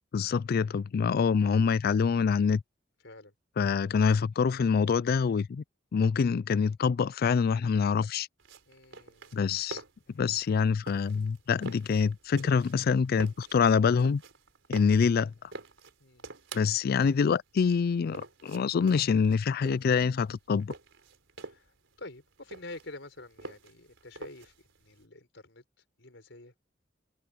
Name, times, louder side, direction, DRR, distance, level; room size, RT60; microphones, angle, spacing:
voice 1, 0.1-2.6 3.6-5.6 5.9-8.3 9.3-9.8 10.1-14.2 14.7-15.3 16.5-20.7, left 6 dB, 50° left, 0.3 m, -25 dB
sound 1, 8.4-25.0, right 3 dB, 85° right, 3.7 m, -47 dB
voice 2, 8.7-9.4 16.0-16.3 16.7-16.8 21.4-25.6 26.0-26.5, left 2 dB, 70° left, 6.1 m, -48 dB
head